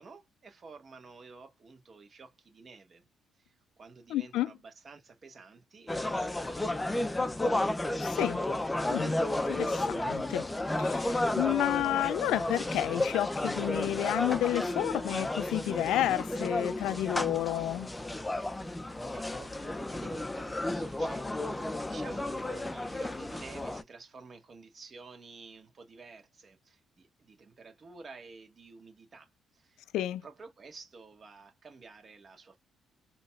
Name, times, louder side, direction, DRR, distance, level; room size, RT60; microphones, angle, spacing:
voice 1, 0.0-3.0 3.4-7.3 18.7-29.8 30.2-32.6, right 4 dB, 45° right, 1.7 m, -51 dB
voice 2, 4.1-4.5 8.0-8.4 8.9-9.2 9.5-10.5 10.8-17.9 29.9-30.2, left 13 dB, 90° left, 0.3 m, -31 dB
sound 1, 5.9-23.8, left 1 dB, 15° left, 0.5 m, -32 dB
3.9 x 2.9 x 2.4 m
cardioid pair, 90°, 0 cm